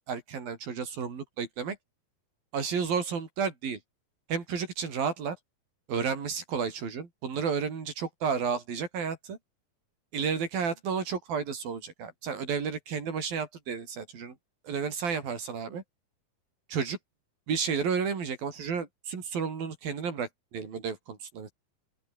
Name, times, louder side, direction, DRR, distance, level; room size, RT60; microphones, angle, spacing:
voice 1, 0.1-1.8 2.5-3.8 4.3-5.4 5.9-9.4 10.1-14.4 14.6-15.8 16.7-17.0 17.5-21.5, right 6 dB, 65° right, 5.9 m, -32 dB
open air
omnidirectional pair, 4.6 m